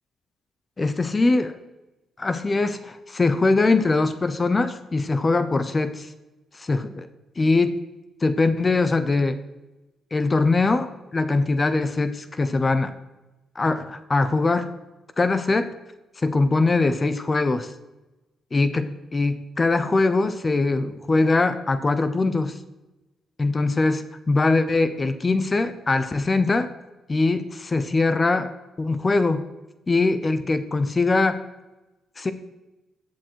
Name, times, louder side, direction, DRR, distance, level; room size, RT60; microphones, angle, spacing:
voice 1, 0.8-1.6 2.2-6.1 6.5-7.1 7.4-7.8 8.2-9.4 10.1-12.9 13.5-14.7 15.2-15.7 16.2-17.7 18.5-22.6 23.4-26.7 27.1-28.5 28.8-29.5 29.9-31.4 32.2-32.3, left 3 dB, 20° left, 11 dB, 0.8 m, -22 dB
15.0 x 7.6 x 4.7 m, 1.0 s
cardioid pair, 145°, 0 cm